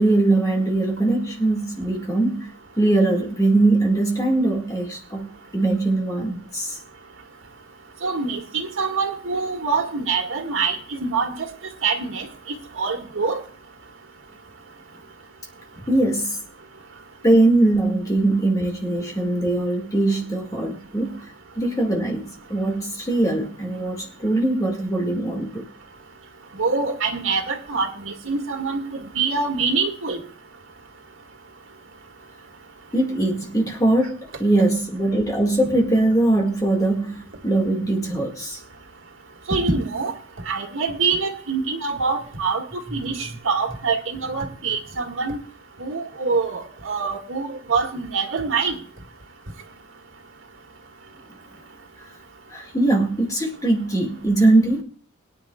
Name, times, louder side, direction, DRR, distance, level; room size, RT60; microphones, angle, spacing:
voice 1, 0.0-6.8 15.7-16.4 17.2-21.2 21.6-25.7 32.9-38.6 52.5-54.8, right 2 dB, 15° left, 0 dB, 2.1 m, -21 dB
voice 2, 8.0-11.5 11.8-12.3 12.8-13.4 26.6-30.2 39.5-40.1 40.5-45.4 45.8-48.7, right 4 dB, 65° right, 3 dB, 2.2 m, -25 dB
22.0 x 10.0 x 2.4 m, 0.44 s
head